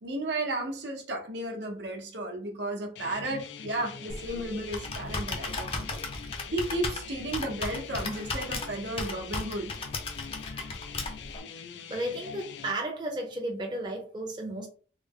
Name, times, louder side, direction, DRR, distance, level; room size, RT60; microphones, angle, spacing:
voice 1, 0.0-9.7 10.5-10.8, right 1 dB, 75° right, 0.8 m, -34 dB
sound 1, 2.9-12.7, left 6 dB, 80° left, 0.4 m, -43 dB
Computer keyboard, 4.1-11.4, left 3 dB, 30° left, 0.5 m, -36 dB
voice 2, 11.9-14.7, right 1 dB, 25° right, 0.6 m, -33 dB
3.3 x 2.0 x 3.5 m
head